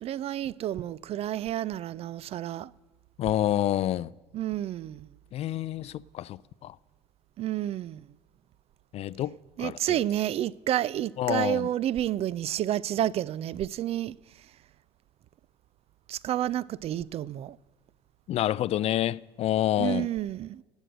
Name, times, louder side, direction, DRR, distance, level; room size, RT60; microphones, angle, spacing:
voice 1, 0.0-2.7 4.3-5.1 7.4-8.0 9.6-14.2 16.1-17.6 19.8-20.6, right 12 dB, 45° right, 0.4 m, -30 dB
voice 2, 3.2-4.1 5.3-6.7 8.9-9.9 11.2-11.7 18.3-20.1, left 13 dB, 45° left, 0.4 m, -28 dB
17.5 x 6.3 x 6.6 m
hypercardioid pair, 80°, 14 cm